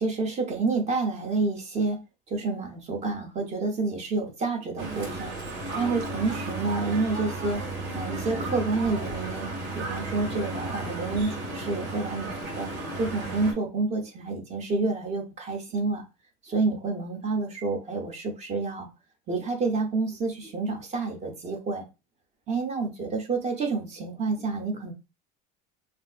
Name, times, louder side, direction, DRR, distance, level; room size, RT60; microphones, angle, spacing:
voice 1, 0.0-2.0 2.3-5.3 5.7-7.6 7.9-9.5 9.7-12.7 12.9-16.0 16.4-18.9 19.3-21.8 22.5-24.9, right 3 dB, 35° right, 0.8 m, -29 dB
sound 1, 4.8-13.5, right 2 dB, 75° right, 1.7 m, -34 dB
3.4 x 2.5 x 2.4 m
cardioid pair, 145°, 20 cm